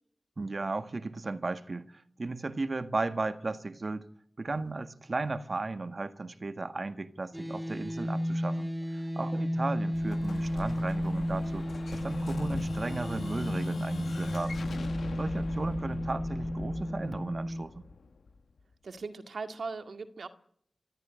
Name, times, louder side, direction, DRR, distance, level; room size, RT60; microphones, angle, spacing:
voice 1, 0.4-4.1 4.4-14.6 15.2-17.7, right 3 dB, 55° right, 1.7 m, -35 dB
sound 1, 7.3-17.6, equal, 5° right, 3.5 m, -33 dB
Explosion, 9.9-18.6, left 4 dB, 85° left, 1.0 m, -41 dB
voice 2, 18.8-20.3, right 4 dB, 80° right, 2.0 m, -39 dB
24.5 x 13.5 x 9.8 m
cardioid pair, 40°, 0 cm